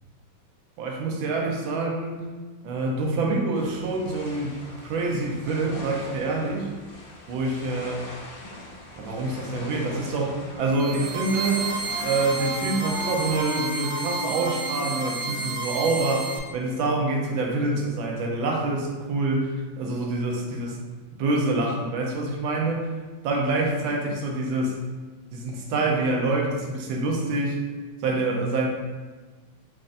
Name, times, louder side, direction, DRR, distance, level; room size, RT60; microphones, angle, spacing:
voice 1, 0.8-2.2 2.6-6.8 7.3-8.0 9.0-20.8 21.2-22.9 23.2-24.8 25.3-27.7 28.0-28.7, right 2 dB, 85° right, 0 dB, 1.4 m, -26 dB
sound 1, 3.5-13.4, left 2 dB, 85° left, 1.6 m, -43 dB
Wind instrument woodwind instrument, 10.4-17.1, left 4 dB, 55° left, 1.2 m, -38 dB
sound 2, 10.6-16.4, right 4 dB, 70° right, 0.8 m, -31 dB
5.3 x 2.5 x 2.5 m, 1.3 s
omnidirectional pair, 2.1 m